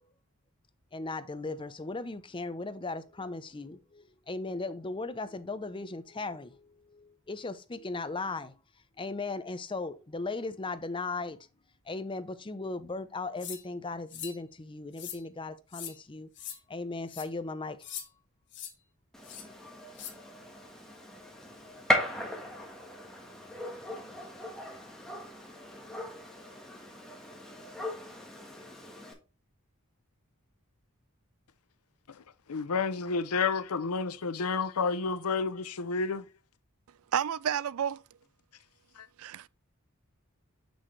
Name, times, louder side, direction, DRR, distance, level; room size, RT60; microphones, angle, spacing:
voice 1, 0.9-8.5 9.0-11.4 11.9-16.3 16.7-17.8, left 3 dB, 25° left, 0.6 m, -37 dB
sound 1, 13.4-13.6 14.1-14.4 14.9-15.2 15.7-15.9 16.4-16.6 17.1-17.3 17.8-18.1 18.5-18.7 19.2-19.4 19.9-20.1, left 10 dB, 55° left, 1.5 m, -41 dB
Gunshot gunfire, 19.1-29.1, left 1 dB, ahead, 1.5 m, -37 dB
voice 2, 32.5-36.2 39.0-39.1, left 4 dB, 90° left, 0.7 m, -30 dB
voice 3, 37.1-38.0 39.2-39.5, right 8 dB, 70° right, 0.4 m, -30 dB
6.4 x 6.2 x 3.2 m
head